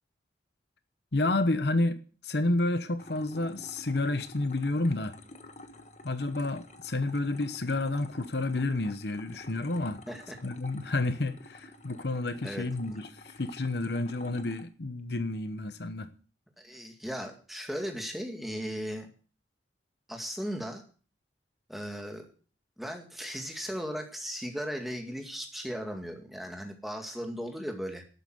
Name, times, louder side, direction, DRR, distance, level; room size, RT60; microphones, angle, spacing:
voice 1, 1.1-2.0 2.2-5.2 6.0-10.0 10.4-16.1, left 2 dB, 65° left, 1.0 m, -30 dB
sound 1, 3.0-14.6, left 1 dB, 40° left, 1.3 m, -50 dB
voice 2, 10.1-10.4 12.4-13.0 16.6-19.1 20.1-20.8 21.7-22.3 22.8-28.0, equal, ahead, 2.1 m, -37 dB
12.0 x 9.0 x 7.8 m
head